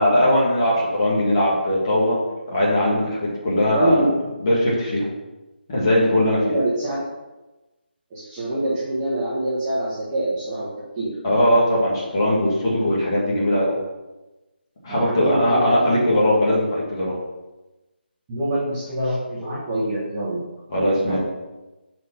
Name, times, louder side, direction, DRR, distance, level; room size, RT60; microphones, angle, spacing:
voice 1, 0.0-2.2 2.5-4.1 4.4-5.1 5.7-6.5 11.2-13.8 14.8-17.2 20.7-21.2, left 1 dB, 25° left, -6 dB, 1.8 m, -20 dB
voice 2, 3.7-4.1 6.5-7.0 8.1-11.1 14.9-15.8 18.3-20.4 21.0-21.2, right 1 dB, 10° right, -9 dB, 0.7 m, -25 dB
5.1 x 4.3 x 5.5 m, 1.1 s
figure-of-eight pair, 175°, 6 cm